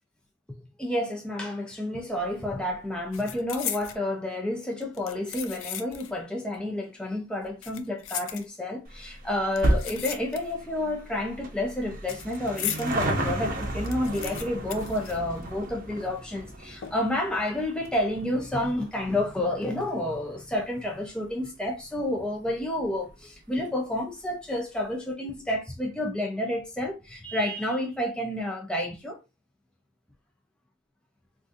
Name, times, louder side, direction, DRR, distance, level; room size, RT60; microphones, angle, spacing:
voice 1, 0.8-29.2, left 1 dB, 5° left, 0.4 m, -30 dB
sound 1, 2.1-2.4 2.6-4.0 4.8-6.2 6.5-6.6 7.4-8.8 9.5-10.7 11.0-13.0 13.4-13.5 13.6-15.8 16.0-16.1 16.8-17.2 17.7-17.9, left 10 dB, 85° left, 0.4 m, -37 dB
sound 2, 8.9-21.6 21.9-22.0 22.9-23.0 23.2-23.3 23.5-23.6, right 1 dB, 45° right, 0.7 m, -33 dB
3.7 x 2.5 x 2.4 m
head